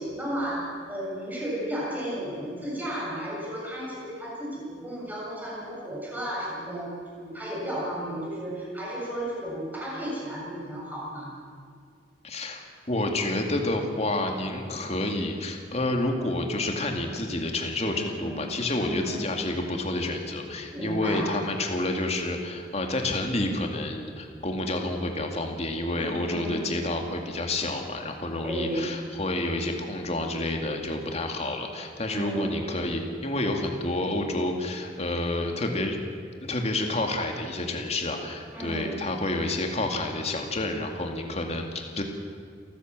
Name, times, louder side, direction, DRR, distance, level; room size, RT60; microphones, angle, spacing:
voice 1, 0.0-11.3 17.9-19.2 20.7-21.3 25.9-26.6 28.4-28.9 32.1-32.6 38.5-39.0, equal, 10° right, -5 dB, 7.6 m, -34 dB
voice 2, 12.2-36.0 36.4-42.0, left 2 dB, 35° left, 3 dB, 2.3 m, -29 dB
28.5 x 14.5 x 7.6 m, 2.2 s
head